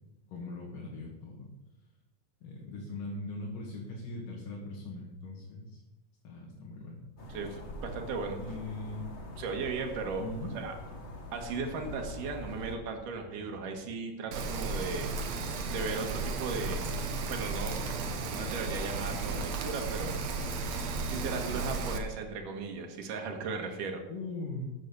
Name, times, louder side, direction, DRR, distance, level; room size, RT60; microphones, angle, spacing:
voice 1, 0.3-1.5 2.4-5.8 6.2-7.0 8.4-9.1 10.2-10.6 24.1-24.7, left 2 dB, 75° left, -3 dB, 3.7 m, -40 dB
sound 1, 7.2-12.8, left 1 dB, 35° left, 1.2 m, -44 dB
voice 2, 7.3-8.4 9.4-10.2 10.5-10.7 11.3-15.1 15.7-16.9 17.3-17.7 18.3-20.2 21.1-24.0, right 4 dB, 75° right, 3 dB, 3.2 m, -36 dB
Rain, 14.3-22.0, right 3 dB, 60° right, 2.3 m, -34 dB
13.0 x 8.5 x 6.9 m, 1.0 s
omnidirectional pair, 3.8 m